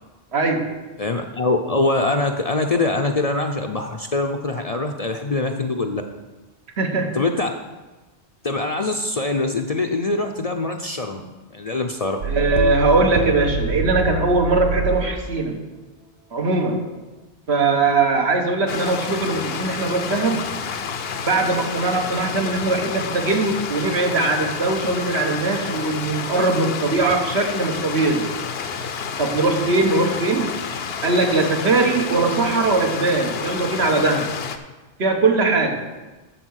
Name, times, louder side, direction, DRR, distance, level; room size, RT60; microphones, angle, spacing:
voice 1, 0.3-0.8 6.8-7.2 12.2-15.6 16.3-16.9 17.5-20.5 21.3-28.3 29.2-30.5 31.0-34.3 35.0-35.8, right 3 dB, 70° right, 4 dB, 1.4 m, -20 dB
voice 2, 1.0-6.0 7.1-7.5 8.4-11.2 11.5-12.2, left 2 dB, 40° left, 4 dB, 0.6 m, -23 dB
sound 1, 12.2-15.2, right 5 dB, 90° right, 1.0 m, -25 dB
Stream, 18.7-34.6, left 6 dB, 65° left, 0.9 m, -30 dB
14.0 x 4.7 x 6.3 m, 1.2 s
omnidirectional pair, 1.1 m